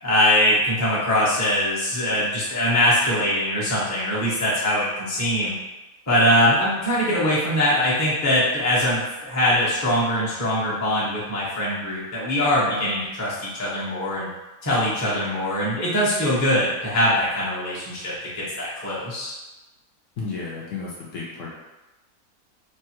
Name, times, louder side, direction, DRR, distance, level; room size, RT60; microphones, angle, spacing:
voice 1, 0.0-5.5 6.1-14.3 14.6-19.3, left 1 dB, 20° left, -8 dB, 0.5 m, -22 dB
voice 2, 20.2-21.5, left 4 dB, 65° left, -4 dB, 0.8 m, -32 dB
3.0 x 2.3 x 2.8 m, 1.1 s
omnidirectional pair, 1.6 m